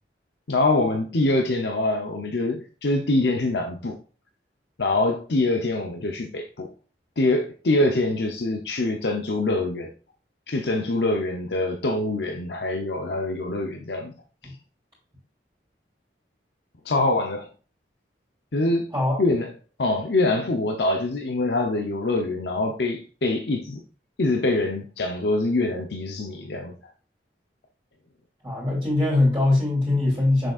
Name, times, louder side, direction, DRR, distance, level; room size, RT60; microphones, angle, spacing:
voice 1, 0.5-4.0 4.8-6.7 7.2-9.9 10.5-14.1 16.8-17.5 18.5-18.9 19.2-19.5 19.8-23.8 24.2-26.8, left 2 dB, 70° left, 3 dB, 0.8 m, -24 dB
voice 2, 18.9-19.3 28.4-30.5, left 2 dB, 20° right, -6 dB, 2.6 m, -22 dB
6.8 x 6.3 x 2.4 m, 0.38 s
head